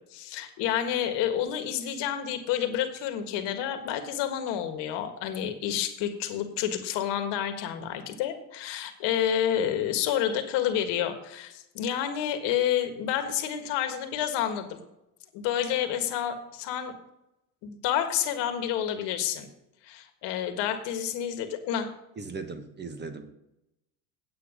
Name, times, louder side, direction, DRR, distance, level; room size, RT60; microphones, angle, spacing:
voice 1, 0.1-14.8 15.3-16.9 17.6-19.5 19.8-21.9, left 10 dB, 65° left, 7 dB, 1.6 m, -29 dB
voice 2, 22.2-23.3, right 4 dB, 20° right, 8 dB, 1.3 m, -38 dB
9.1 x 8.4 x 5.0 m, 0.87 s
supercardioid pair, 100°, 46 cm